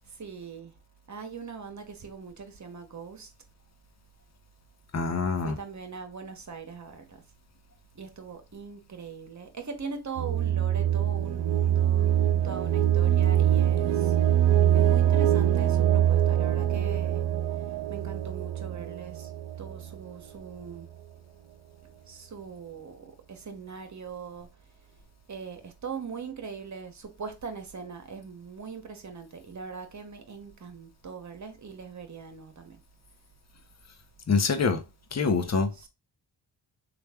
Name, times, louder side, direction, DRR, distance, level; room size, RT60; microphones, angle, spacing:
voice 1, 0.1-0.7 1.1-3.3 5.4-7.2 7.9-12.1 12.4-14.1 14.7-17.2 17.9-19.3 19.6-20.9 22.1-24.5 25.3-32.8 35.8-35.9, right 5 dB, 40° right, 1.0 m, -41 dB
voice 2, 4.9-5.5 34.3-34.8 35.1-35.9, left 4 dB, 35° left, 0.8 m, -25 dB
sound 1, 10.2-20.0, right 11 dB, 70° right, 0.5 m, -24 dB
3.2 x 2.5 x 3.4 m
supercardioid pair, 45°, 45 cm